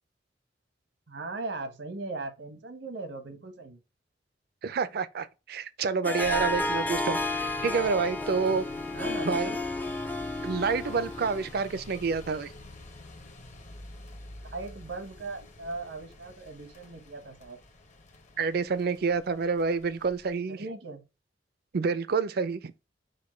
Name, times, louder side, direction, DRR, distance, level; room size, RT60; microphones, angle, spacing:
voice 1, 1.1-3.8 8.9-9.6 14.5-17.6 20.5-21.0, right 3 dB, 85° right, 1.0 m, -38 dB
voice 2, 4.6-8.7 9.2-9.5 10.4-12.5 18.4-20.6 21.7-22.6, right 5 dB, 60° right, 0.4 m, -28 dB
Harp, 6.0-11.5, left 2 dB, 10° left, 0.4 m, -32 dB
sound 1, 6.2-20.3, left 1 dB, 45° left, 0.8 m, -47 dB
5.1 x 2.2 x 4.3 m
head